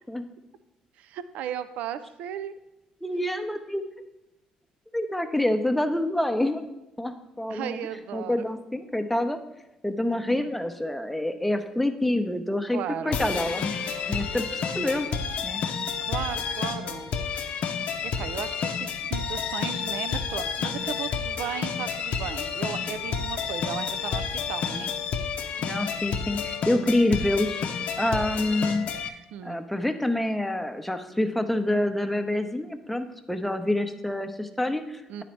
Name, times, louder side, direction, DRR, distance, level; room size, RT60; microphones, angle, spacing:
voice 1, 1.0-2.5 7.5-8.5 10.3-10.5 12.7-13.2 16.1-17.1 18.0-24.9 29.3-29.6 35.1-35.2, right 10 dB, 75° right, 13 dB, 0.4 m, -35 dB
voice 2, 3.0-3.8 4.9-6.6 7.0-7.8 8.1-9.4 9.8-12.8 13.0-13.7 14.1-15.1 15.4-15.6 25.6-27.7 28.0-28.9 29.4-35.2, left 1 dB, 5° left, 7 dB, 0.7 m, -27 dB
sound 1, 13.1-29.1, left 6 dB, 65° left, 0.6 m, -30 dB
9.1 x 4.1 x 4.4 m, 0.96 s
supercardioid pair, 75°, 2 cm